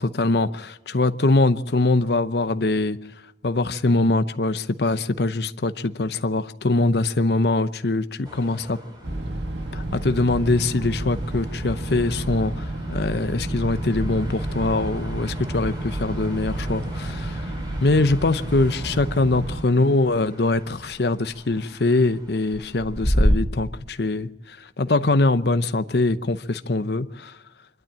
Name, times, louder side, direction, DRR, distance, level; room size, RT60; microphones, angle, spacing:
voice 1, 0.0-3.0 3.4-8.8 9.7-17.5 17.8-27.4, left 2 dB, 65° left, 0.8 m, -23 dB
sound 1, 8.2-23.3, equal, 25° right, 3.9 m, -33 dB
sound 2, 9.0-19.6, right 1 dB, 80° right, 1.9 m, -30 dB
24.5 x 12.0 x 8.8 m
head